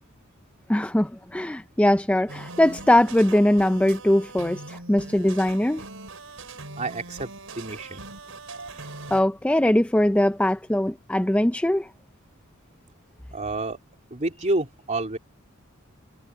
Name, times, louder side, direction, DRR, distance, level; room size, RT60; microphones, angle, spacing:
voice 1, 0.7-5.8 9.1-11.9, left 1 dB, 5° left, 0.4 m, -21 dB
sound 1, 2.3-9.2, right 3 dB, 70° right, 6.1 m, -41 dB
voice 2, 6.8-8.0 13.3-13.8 14.1-15.2, right 2 dB, 35° right, 3.2 m, -29 dB
head